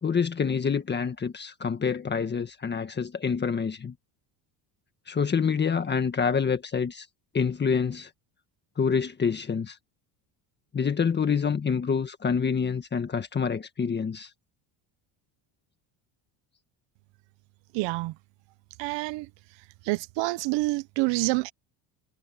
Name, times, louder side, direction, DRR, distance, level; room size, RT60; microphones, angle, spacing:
voice 1, 0.0-3.9 5.1-7.1 7.3-8.1 8.8-9.8 10.7-14.3, left 6 dB, 20° left, 1.5 m, -27 dB
voice 2, 17.7-18.1 18.8-19.3 19.8-21.5, right 22 dB, 70° right, 0.9 m, -27 dB
cardioid pair, 140°, 46 cm